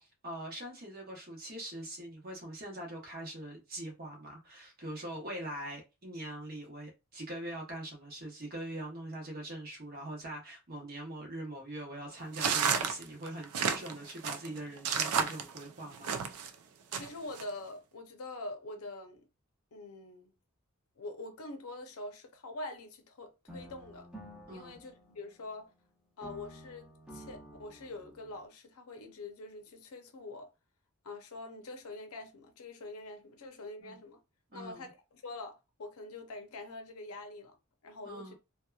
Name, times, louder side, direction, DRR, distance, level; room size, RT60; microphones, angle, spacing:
voice 1, 0.0-16.1 24.5-24.8 33.8-34.0 34.5-34.9 38.1-38.3, right 1 dB, 40° right, 0.9 m, -42 dB
sound 1, 12.3-16.5 16.9-17.4, right 6 dB, 80° right, 0.4 m, -31 dB
voice 2, 16.9-19.2 19.7-20.3 21.0-24.1 24.5-25.7 26.2-30.5 31.0-34.2 34.5-37.6 37.8-38.3, left 2 dB, 75° left, 0.6 m, -45 dB
sound 2, 23.5-25.8 26.2-28.5, equal, 5° right, 0.6 m, -51 dB
2.7 x 2.2 x 2.3 m
head